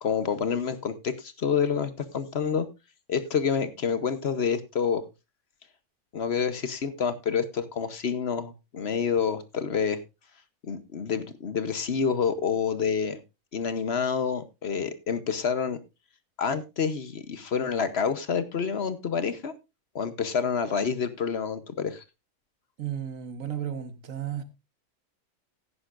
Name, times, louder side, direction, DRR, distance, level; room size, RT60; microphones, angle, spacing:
voice 1, 0.0-2.7 3.1-5.0 6.1-10.0 10.6-13.2 13.5-15.8 16.4-19.5 19.9-22.0, left 6 dB, 55° left, 1.1 m, -28 dB
voice 2, 22.8-24.4, right 9 dB, 75° right, 1.6 m, -33 dB
16.5 x 9.8 x 2.5 m
omnidirectional pair, 1.4 m